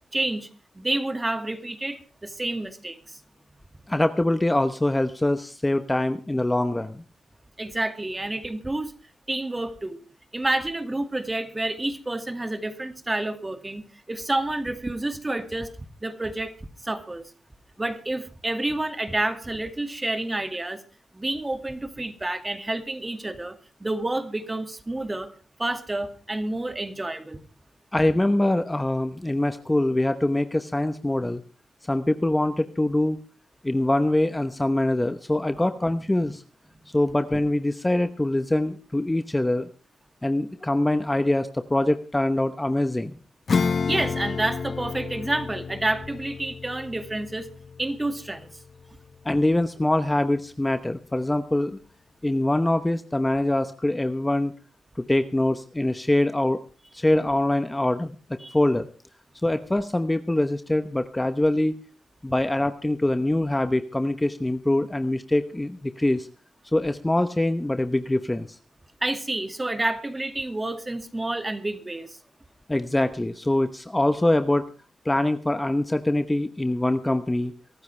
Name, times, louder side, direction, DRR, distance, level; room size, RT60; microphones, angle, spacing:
voice 1, 0.1-0.5 0.7-3.2 7.6-8.9 9.3-10.0 10.3-13.8 14.1-15.7 16.0-16.5 16.8-17.3 17.8-20.8 21.1-25.3 25.6-27.4 43.8-47.5 47.8-48.5 58.4-58.6 69.0-72.2, right 2 dB, 20° right, 8 dB, 2.2 m, -29 dB
voice 2, 3.9-7.0 27.9-31.4 31.9-33.2 33.6-36.4 36.9-39.7 40.2-43.2 49.2-51.8 52.2-54.5 55.0-56.6 56.9-58.1 58.5-58.9 59.4-61.8 62.2-66.3 66.7-68.6 72.7-74.6 75.0-77.5, left 1 dB, 15° left, 10 dB, 1.0 m, -24 dB
Acoustic guitar / Strum, 43.5-49.5, left 5 dB, 50° left, 0.9 m, -30 dB
23.5 x 13.0 x 3.4 m, 0.35 s
cardioid pair, 60°, 0 cm